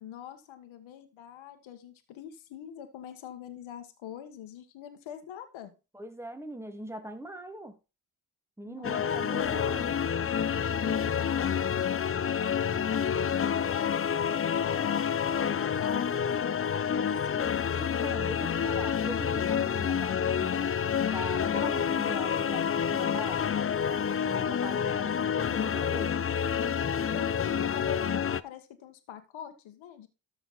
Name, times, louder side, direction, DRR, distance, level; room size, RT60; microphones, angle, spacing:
voice 1, 0.0-5.7 8.6-9.3 9.5-9.7 10.4-15.2 15.5-17.6 26.8-30.1, left 10 dB, 75° left, 1.7 m, -45 dB
voice 2, 5.9-7.8 8.6-9.9 17.8-20.7 21.0-23.5 24.2-26.2, right 1 dB, 5° right, 2.4 m, -41 dB
sound 1, 8.8-28.4, left 7 dB, 30° left, 0.6 m, -28 dB
13.5 x 5.1 x 4.2 m
hypercardioid pair, 45°, 47 cm